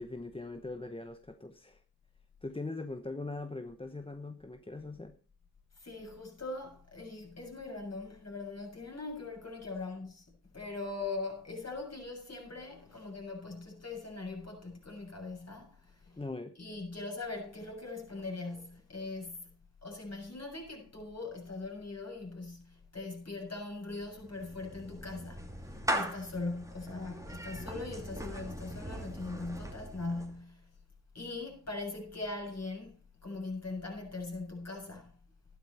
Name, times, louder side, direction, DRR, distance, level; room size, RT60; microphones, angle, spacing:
voice 1, 0.0-1.8 2.4-5.2 16.2-16.5, left 2 dB, 15° left, 1.0 m, -41 dB
voice 2, 5.8-16.2 16.6-19.5 19.8-30.7 31.1-33.0 33.2-35.1, left 3 dB, 40° left, 7.1 m, -41 dB
Clapping / Meow, 24.0-30.4, equal, 10° right, 2.6 m, -40 dB
12.0 x 12.0 x 4.4 m
cardioid pair, 50°, 40 cm